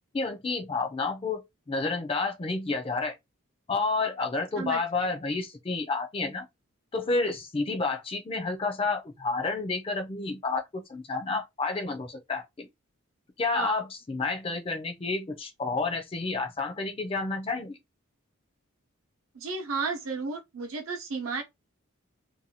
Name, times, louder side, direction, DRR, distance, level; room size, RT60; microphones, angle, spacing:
voice 1, 0.1-3.2 3.7-6.5 6.9-12.7 13.4-17.8, left 3 dB, 25° left, 0.4 m, -30 dB
voice 2, 4.6-5.1 13.5-13.8 19.3-21.4, right 4 dB, 75° right, 0.7 m, -33 dB
2.6 x 2.2 x 2.7 m
head